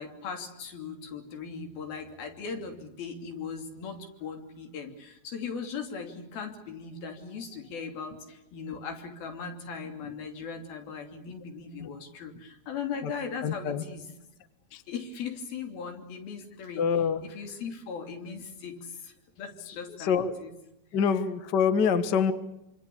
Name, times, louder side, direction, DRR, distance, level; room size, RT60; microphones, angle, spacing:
voice 1, 0.0-14.1 14.9-20.5, left 5 dB, 85° left, 4 dB, 4.8 m, -39 dB
voice 2, 13.4-13.8 14.7-14.8 16.8-17.2 20.0-20.3 20.9-22.3, left 6 dB, 45° left, 10 dB, 1.4 m, -25 dB
26.5 x 26.5 x 7.1 m, 0.87 s
omnidirectional pair, 4.1 m